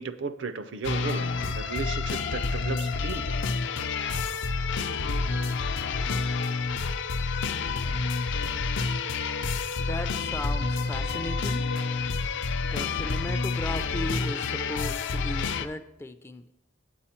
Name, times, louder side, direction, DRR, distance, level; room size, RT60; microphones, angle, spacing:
voice 1, 0.0-3.4, right 4 dB, 70° right, 12 dB, 0.6 m, -35 dB
sound 1, 0.8-15.7, left 4 dB, 65° left, 0.5 m, -29 dB
voice 2, 9.8-11.7 12.6-16.5, left 1 dB, 15° left, 9 dB, 0.4 m, -36 dB
8.6 x 8.6 x 4.3 m, 0.88 s
head